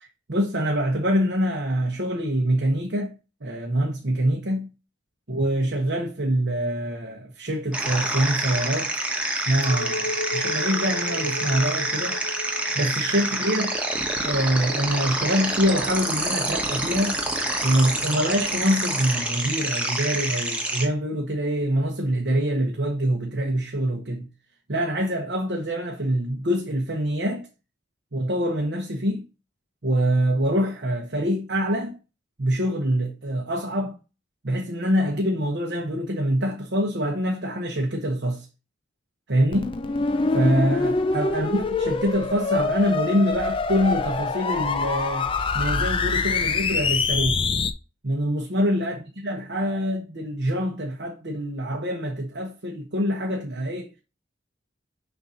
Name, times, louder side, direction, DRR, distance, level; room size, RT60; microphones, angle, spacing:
voice 1, 0.0-3.1 3.4-4.7 5.3-9.0 9.4-12.2 12.7-13.8 14.2-17.2 17.6-24.3 24.7-27.5 28.1-29.3 29.8-32.0 32.4-34.0 34.4-38.4 39.3-39.7 40.3-45.3 45.5-47.4 48.0-54.0, equal, 65° right, 1.1 m, -25 dB
sound 1, 7.7-20.8, right 1 dB, 5° right, 1.0 m, -27 dB
Chink clink, 9.6-15.1, left 1 dB, 85° left, 0.9 m, -35 dB
sound 2, 39.5-47.7, left 4 dB, 25° left, 0.4 m, -25 dB
6.7 x 2.7 x 5.6 m
head